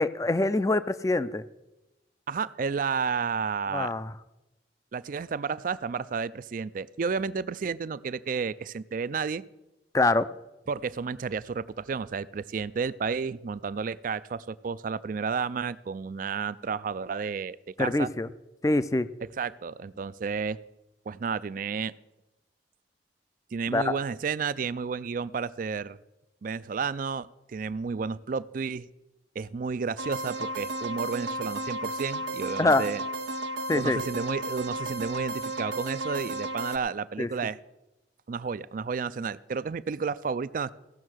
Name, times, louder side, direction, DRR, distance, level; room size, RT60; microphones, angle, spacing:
voice 1, 0.0-1.4 3.7-4.1 9.9-10.3 17.8-18.3 18.6-19.1 23.7-23.9 32.6-32.8 33.7-34.0 37.2-37.3, left 2 dB, 15° left, 14 dB, 0.4 m, -24 dB
voice 2, 2.3-3.9 4.9-9.4 10.7-18.1 19.4-20.6 21.1-21.9 23.5-26.0 26.4-28.9 29.4-33.0 33.7-37.6 38.3-40.7, right 5 dB, 45° right, 18 dB, 0.4 m, -31 dB
sound 1, 30.0-36.8, right 1 dB, 75° right, 0.8 m, -33 dB
16.0 x 6.5 x 6.3 m, 0.98 s
head